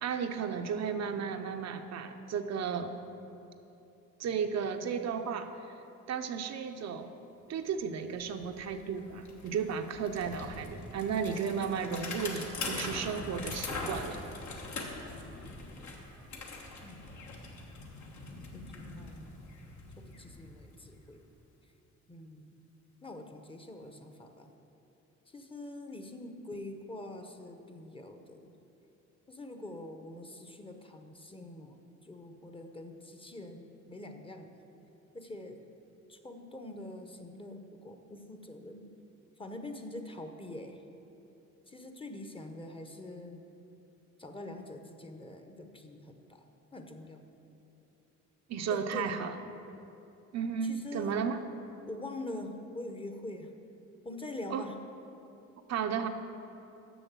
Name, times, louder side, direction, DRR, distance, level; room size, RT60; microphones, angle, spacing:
voice 1, 0.0-2.9 4.2-5.7 6.1-7.1 7.5-14.2 48.5-49.3 50.3-51.4 54.5-54.7 55.7-56.1, right 6 dB, 60° right, 6 dB, 0.6 m, -34 dB
Bicycle, 7.8-7.9 8.2-21.1, left 3 dB, 70° left, 1.4 m, -42 dB
voice 2, 18.5-19.4 20.0-21.3 22.1-22.7 23.0-24.5 25.3-28.5 29.3-31.7 32.0-34.5 35.1-35.6 36.1-38.9 39.4-40.8 41.7-43.4 44.2-46.4 46.7-47.3 48.7-49.2 50.6-51.2 51.9-53.5 54.0-54.8, left 1 dB, 20° left, 5 dB, 0.8 m, -44 dB
7.1 x 6.4 x 7.3 m, 2.8 s
cardioid pair, 90°, 30 cm